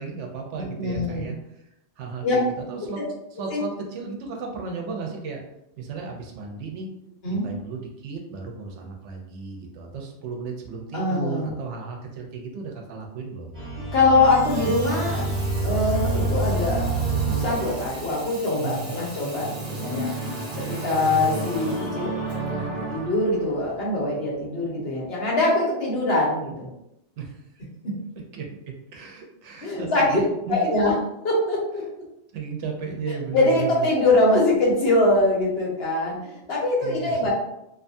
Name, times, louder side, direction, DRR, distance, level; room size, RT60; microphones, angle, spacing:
voice 1, 0.0-1.6 2.0-3.0 3.3-5.4 5.8-6.9 7.4-13.5 18.5-19.0 27.2-27.7 28.1-28.5 28.9-30.8 32.3-33.9 36.8-37.3, right 4 dB, 85° right, 1 dB, 0.9 m, -34 dB
voice 2, 0.8-1.3 2.2-2.4 3.5-3.6 7.2-7.5 10.9-11.5 13.9-15.2 15.6-16.9 17.3-20.1 20.8-22.2 22.9-26.7 29.6-30.2 30.5-30.9 31.2-31.8 33.0-37.3, left 2 dB, 60° left, -4 dB, 1.1 m, -23 dB
sound 1, 13.5-23.6, right 2 dB, 50° right, 1.3 m, -29 dB
Water tap faucet / Sink (filling or washing), 14.2-23.7, right 1 dB, 35° right, 0.8 m, -43 dB
2.6 x 2.3 x 2.6 m, 0.83 s
omnidirectional pair, 1.2 m